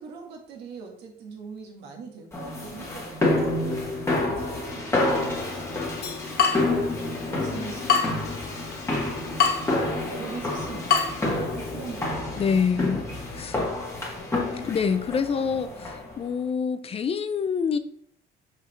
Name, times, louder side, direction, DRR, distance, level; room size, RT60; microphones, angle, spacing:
voice 1, 0.0-5.8 6.9-8.4 9.2-12.4 12.7-13.2, right 5 dB, 85° right, 1 dB, 1.6 m, -42 dB
sound 1, 2.3-16.2, left 2 dB, 15° left, 1.9 m, -29 dB
Water tap faucet / Drip, 5.1-12.1, left 6 dB, 70° left, 1.1 m, -29 dB
voice 2, 12.4-13.0 13.4-13.6 14.5-17.8, left 6 dB, 35° left, 12 dB, 0.5 m, -26 dB
6.0 x 5.1 x 3.2 m, 0.64 s
cardioid pair, 110°, 17 cm